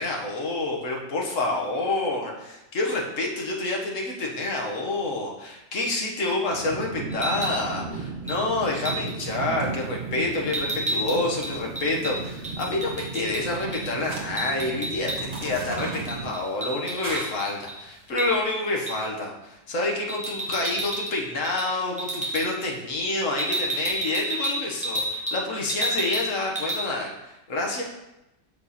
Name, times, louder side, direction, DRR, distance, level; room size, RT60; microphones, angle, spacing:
voice 1, 0.0-27.8, left 2 dB, 75° left, -1 dB, 1.6 m, -28 dB
sound 1, 6.5-16.3, right 4 dB, 50° right, 0.9 m, -36 dB
sound 2, 7.1-7.6 8.3-8.4 8.8-9.1 10.5-13.4 13.7-13.8 14.1-15.4 15.8-17.8 18.2-18.3 18.9-19.1 20.1-21.2 21.4-21.7 22.0-22.5 23.4-25.4 25.7-26.3 26.6-26.8, right 1 dB, 5° right, 1.2 m, -30 dB
sound 3, 9.3-18.4, right 2 dB, 80° right, 1.7 m, -44 dB
6.6 x 5.3 x 4.2 m, 0.93 s
omnidirectional pair, 1.3 m